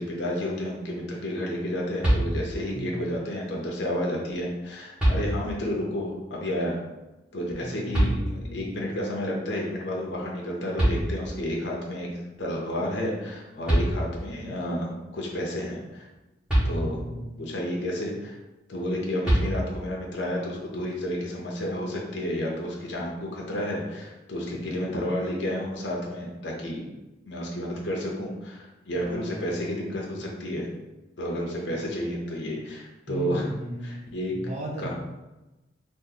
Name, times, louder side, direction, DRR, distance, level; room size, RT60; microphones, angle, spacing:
voice 1, 0.0-6.8 7.3-16.1 16.6-17.0 17.4-18.4 18.7-26.9 27.3-30.7 31.2-33.5 33.8-34.3 34.8-34.9, equal, 60° left, -2 dB, 0.6 m, -31 dB
sound 1, 2.0-2.8 4.3-4.4 5.0-5.7 7.9-8.7 10.4-10.5 10.8-11.6 13.3-13.4 13.7-14.4 16.5-17.3 19.2-20.0, right 1 dB, 5° right, 1.3 m, -25 dB
voice 2, 2.6-3.1 7.6-9.0 16.8-17.4 29.0-30.3 31.7-31.8 33.1-34.0 34.3-34.9, right 1 dB, 35° right, -2 dB, 0.6 m, -37 dB
2.8 x 2.5 x 3.8 m, 1.0 s
head